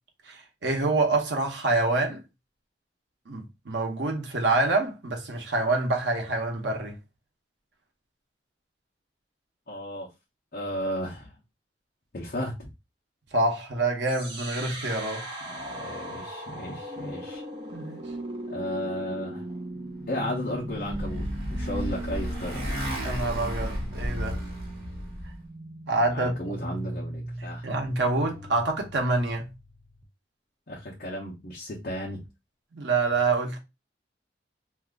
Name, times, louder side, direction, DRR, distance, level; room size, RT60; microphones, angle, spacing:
voice 1, 0.3-2.2 3.3-7.0 13.3-15.3 17.7-18.0 23.0-24.4 25.9-26.3 27.6-29.5 32.7-33.6, right 2 dB, 90° right, 0.9 m, -26 dB
voice 2, 9.7-10.1 10.5-11.3 12.1-12.7 15.5-17.4 18.5-19.4 20.1-22.6 26.1-27.7 30.7-32.2, equal, 55° left, 0.8 m, -34 dB
sound 1, 14.0-30.0, right 1 dB, 30° right, 0.7 m, -39 dB
Motorcycle, 20.4-25.4, equal, 60° right, 1.4 m, -33 dB
2.7 x 2.5 x 3.5 m
head